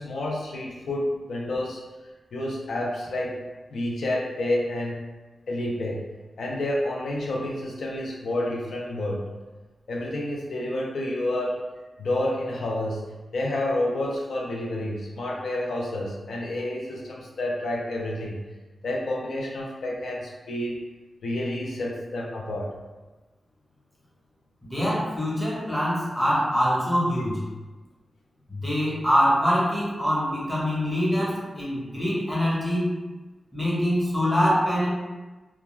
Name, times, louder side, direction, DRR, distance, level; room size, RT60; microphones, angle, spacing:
voice 1, 0.0-1.8 2.3-5.1 5.5-6.1 6.4-9.3 9.9-11.7 12.0-18.5 18.8-20.8 21.2-22.7, left 1 dB, 85° left, -2 dB, 0.4 m, -29 dB
voice 2, 24.6-27.4 28.5-32.9 33.5-34.9, equal, 10° left, -6 dB, 0.9 m, -24 dB
2.2 x 2.2 x 3.0 m, 1.2 s
wide cardioid pair, 100°, 0 cm